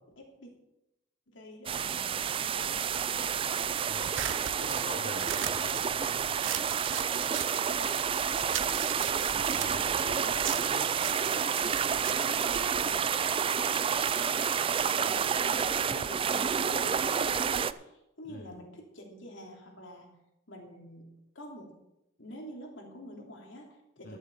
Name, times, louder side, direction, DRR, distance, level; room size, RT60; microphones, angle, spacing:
voice 1, 0.2-0.5 1.3-3.5 7.1-7.3 7.6-8.2 10.2-10.7 11.1-13.2 14.7-20.2 20.5-21.0 21.3-21.7 22.2-24.2, equal, 70° left, 0 dB, 3.1 m, -47 dB
sound 1, 1.7-17.7, right 7 dB, 25° right, 0.3 m, -29 dB
voice 2, 3.9-4.3 4.6-6.4 9.3-11.0 18.3-18.4 24.0-24.2, left 2 dB, 50° left, 2 dB, 1.0 m, -44 dB
sound 2, 4.0-8.1 8.4-13.2, right 11 dB, 75° right, 0.7 m, -39 dB
12.0 x 7.4 x 7.0 m, 0.90 s
head